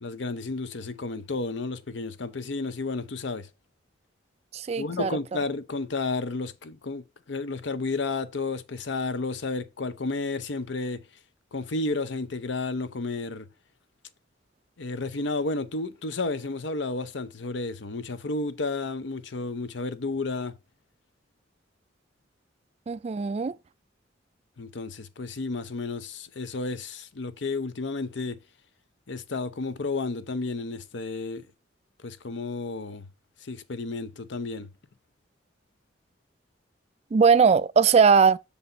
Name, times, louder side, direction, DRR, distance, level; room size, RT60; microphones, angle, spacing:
voice 1, 0.0-3.5 4.8-11.0 11.5-13.5 14.8-20.6 24.6-28.4 29.1-31.5 32.0-33.1 33.4-34.7, left 3 dB, 70° left, 0.7 m, -32 dB
voice 2, 4.5-5.1 22.9-23.5 37.1-38.4, right 5 dB, 35° right, 0.3 m, -20 dB
6.9 x 4.1 x 5.3 m
head